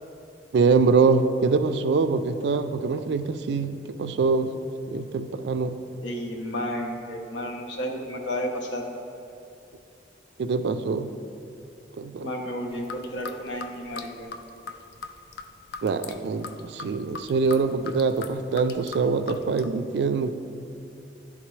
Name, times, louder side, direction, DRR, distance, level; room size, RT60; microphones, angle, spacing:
voice 1, 0.5-4.5 4.9-5.7 10.4-11.1 12.0-12.3 15.8-20.4, right 4 dB, 65° right, 9 dB, 0.3 m, -24 dB
voice 2, 6.0-8.9 12.2-14.3, equal, 90° left, 2 dB, 0.8 m, -32 dB
sound 1, 12.7-19.6, left 5 dB, 55° left, 0.3 m, -40 dB
10.5 x 3.6 x 3.1 m, 2.7 s
head